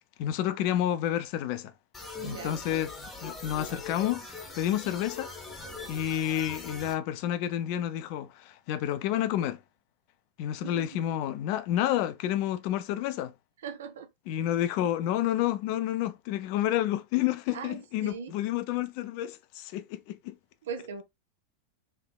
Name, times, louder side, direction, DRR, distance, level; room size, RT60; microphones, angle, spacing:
voice 1, 0.2-1.7 2.2-2.9 3.2-4.3 4.6-5.3 5.9-9.6 10.4-13.3 14.3-20.4, left 12 dB, 45° left, 0.4 m, -29 dB
sound 1, 1.9-6.9, left 3 dB, 15° left, 0.9 m, -41 dB
voice 2, 2.2-2.6 10.6-11.0 13.6-14.1 17.5-18.4 20.6-21.0, right 6 dB, 60° right, 0.5 m, -39 dB
3.3 x 3.2 x 2.2 m
figure-of-eight pair, 90°, 0 cm